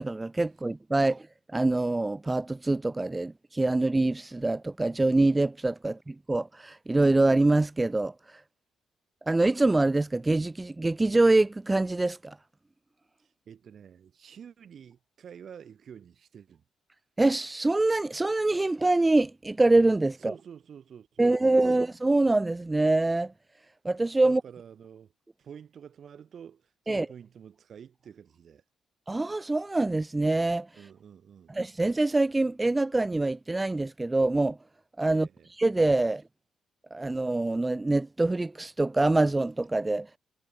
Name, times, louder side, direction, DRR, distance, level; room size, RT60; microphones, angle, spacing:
voice 1, 0.0-8.4 9.3-12.4 17.2-20.3 21.2-23.3 23.8-24.4 26.9-27.1 29.1-30.7 31.5-34.6 35.0-35.3 35.6-36.2 36.9-40.2, right 2 dB, 15° right, 0.4 m, -25 dB
voice 2, 13.2-16.6 20.2-21.8 24.2-25.1 25.4-28.6 30.7-31.6 35.1-35.5, right 8 dB, 55° right, 3.9 m, -48 dB
cardioid pair, 90°, 0 cm